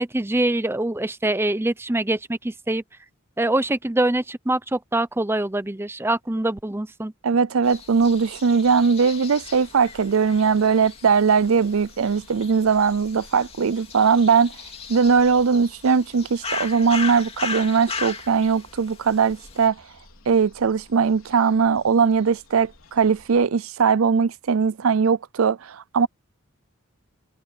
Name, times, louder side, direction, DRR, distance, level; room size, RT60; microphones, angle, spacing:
voice 1, 0.0-2.8 3.4-7.1, right 1 dB, 10° right, 0.6 m, -24 dB
voice 2, 7.2-14.5 14.9-19.8 20.3-26.1, right 5 dB, 80° right, 0.5 m, -20 dB
sound 1, 7.6-19.6, left 5 dB, 30° left, 2.6 m, -37 dB
sound 2, 9.3-23.5, left 2 dB, 75° left, 4.9 m, -53 dB
head